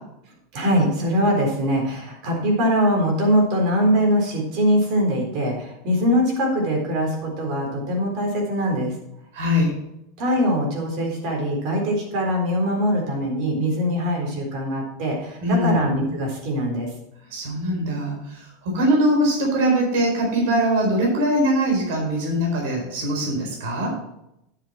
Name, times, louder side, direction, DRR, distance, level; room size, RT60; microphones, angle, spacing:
voice 1, 0.5-8.9 10.2-16.9, equal, 50° right, 0 dB, 3.9 m, -22 dB
voice 2, 9.3-9.7 15.4-16.1 17.3-23.9, equal, 70° right, -1 dB, 4.4 m, -22 dB
9.9 x 7.8 x 4.3 m, 0.83 s
supercardioid pair, 150°, 0 cm